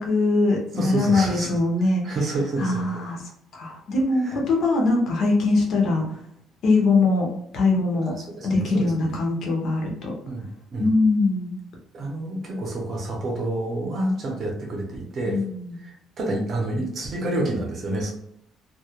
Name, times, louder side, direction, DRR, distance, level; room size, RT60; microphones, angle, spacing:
voice 1, 0.0-2.2 2.6-3.2 3.5-6.0 6.6-7.3 7.5-8.1 8.4-10.1 10.8-11.6 15.2-15.8, left 3 dB, 50° left, 0 dB, 0.6 m, -22 dB
voice 2, 0.8-1.5 2.0-2.8 4.2-4.4 8.4-9.1 10.2-10.9 11.9-15.4 15.8-18.1, right 2 dB, 35° right, 0 dB, 0.6 m, -28 dB
2.2 x 2.1 x 2.9 m, 0.73 s
cardioid pair, 170°, 0 cm